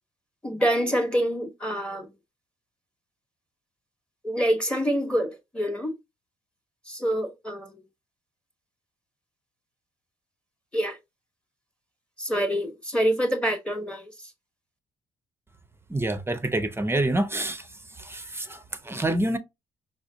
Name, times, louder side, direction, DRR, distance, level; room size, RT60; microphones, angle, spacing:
voice 1, 0.4-2.1 4.2-5.9 6.9-7.8 10.7-11.0 12.2-14.1, equal, 5° left, 1.0 m, -26 dB
voice 2, 15.9-17.7 18.0-19.4, right 1 dB, 15° right, 0.7 m, -27 dB
4.9 x 2.1 x 2.6 m
hypercardioid pair, 50°, 16 cm